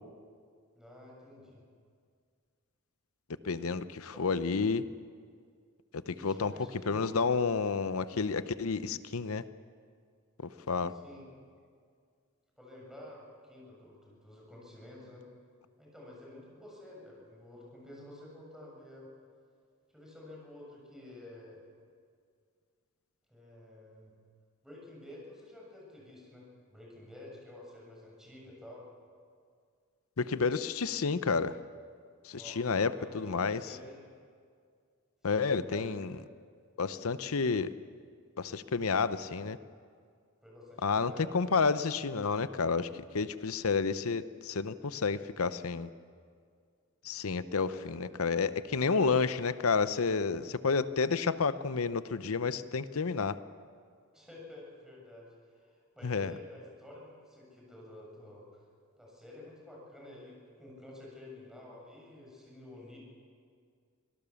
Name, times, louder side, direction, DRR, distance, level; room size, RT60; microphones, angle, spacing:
voice 1, 0.7-1.6 4.1-4.3 6.1-7.4 10.9-11.2 12.6-15.2 15.8-19.1 19.9-21.6 23.3-24.1 24.6-28.8 32.3-34.0 35.2-35.9 40.4-41.6 47.6-48.1 48.9-49.1 54.1-58.6 59.0-63.0, left 1 dB, ahead, -3 dB, 6.9 m, -50 dB
voice 2, 3.4-4.8 5.9-6.5 6.9-9.4 10.4-10.9 30.2-31.6 32.2-33.6 35.2-36.1 36.8-37.7 38.4-39.6 40.8-42.9 43.1-45.9 47.0-53.4 56.0-56.3, left 4 dB, 80° left, 13 dB, 0.8 m, -30 dB
25.0 x 17.5 x 7.1 m, 2.1 s
head